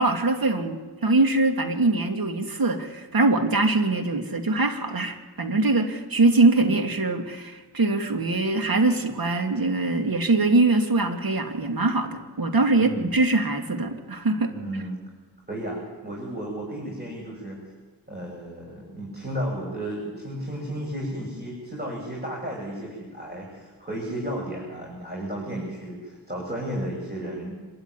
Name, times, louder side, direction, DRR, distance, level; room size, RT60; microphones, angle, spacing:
voice 1, 0.0-14.5, right 2 dB, 55° right, 5 dB, 2.7 m, -23 dB
voice 2, 12.7-13.1 14.5-15.0 15.5-17.6 18.1-27.6, right 1 dB, 25° right, -2 dB, 7.3 m, -33 dB
26.0 x 13.0 x 9.8 m, 1.3 s
cardioid pair, 45°, 42 cm